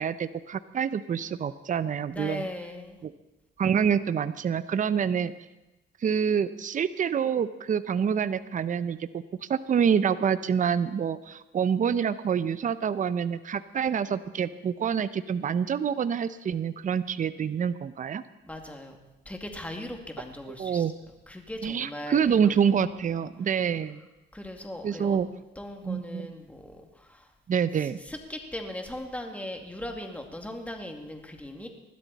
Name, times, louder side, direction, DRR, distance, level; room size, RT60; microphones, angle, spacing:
voice 1, 0.0-2.5 3.0-3.1 3.6-5.3 6.0-9.1 9.5-18.2 20.5-20.9 21.6-24.0 24.8-25.3 25.8-26.3 27.5-28.0, right 7 dB, 40° right, 14 dB, 0.7 m, -27 dB
voice 2, 2.1-3.0 18.4-19.0 19.3-20.8 21.3-22.5 24.3-25.2 25.6-27.3 28.1-31.7, left 1 dB, 5° left, 3 dB, 2.3 m, -38 dB
20.0 x 13.0 x 4.1 m, 1.0 s
cardioid pair, 90°, 20 cm